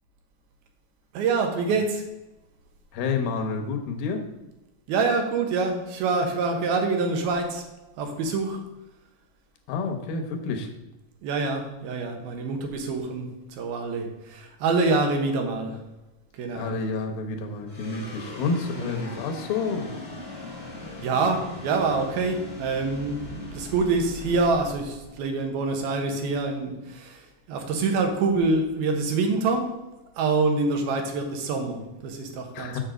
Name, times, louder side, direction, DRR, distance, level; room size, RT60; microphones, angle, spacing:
voice 1, 1.1-2.0 4.9-7.6 8.0-8.6 11.2-15.8 16.3-16.7 18.7-19.0 20.8-29.7 30.2-32.8, right 3 dB, 85° right, 4 dB, 3.1 m, -26 dB
voice 2, 2.9-4.2 9.7-10.7 16.5-20.0 32.6-32.8, left 4 dB, 75° left, 4 dB, 2.8 m, -29 dB
sound 1, 17.7-26.2, left 2 dB, 30° left, 0.8 m, -40 dB
7.5 x 7.1 x 5.0 m, 1.0 s
omnidirectional pair, 4.2 m